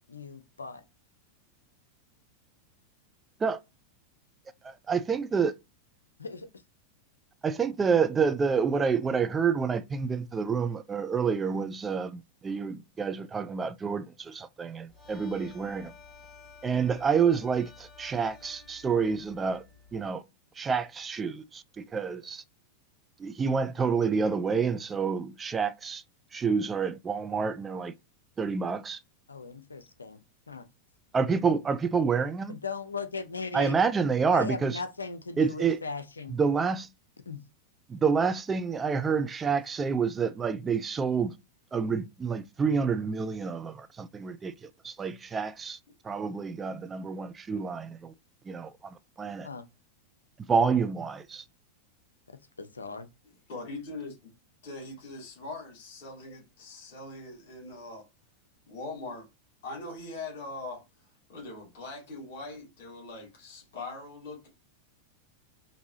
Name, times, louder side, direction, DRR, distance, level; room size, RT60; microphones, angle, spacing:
voice 1, 0.1-0.8 6.2-6.5 29.3-30.2 30.5-30.7 32.5-33.8 34.3-36.4 37.3-37.4 49.4-49.7 52.6-53.1, left 4 dB, 75° left, 0.6 m, -37 dB
voice 2, 4.6-5.5 7.4-15.9 16.6-19.6 19.9-20.2 20.6-22.4 23.2-26.0 26.3-27.9 28.4-29.0 31.1-32.6 33.5-34.8 35.4-35.8 36.3-36.9 37.9-41.3 41.7-45.8 46.0-48.1 48.5-49.5 50.5-51.4, right 5 dB, 20° right, 0.4 m, -28 dB
sound 1, 14.9-20.1, left 4 dB, 20° left, 1.5 m, -52 dB
voice 3, 53.5-54.1 54.6-58.1 58.7-59.3 59.6-60.8 61.3-64.5, left 2 dB, 55° left, 2.3 m, -41 dB
4.6 x 2.7 x 2.7 m
figure-of-eight pair, 90°, 0 cm